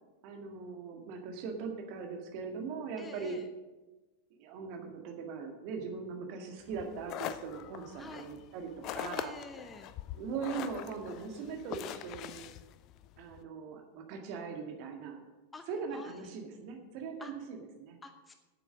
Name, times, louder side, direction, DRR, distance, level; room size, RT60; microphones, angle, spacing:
voice 1, 0.2-3.4 4.3-9.3 10.1-12.5 13.2-15.2 15.7-18.0, right 5 dB, 45° right, 4 dB, 1.8 m, -40 dB
voice 2, 3.0-3.5 8.0-8.3 9.0-9.9 15.5-15.7 15.9-16.3 17.2-17.3 18.0-18.4, left 3 dB, 10° left, 7 dB, 0.8 m, -48 dB
sound 1, 6.7-13.4, left 12 dB, 40° left, 0.5 m, -43 dB
9.6 x 8.3 x 6.4 m, 1.2 s
figure-of-eight pair, 90°, 0 cm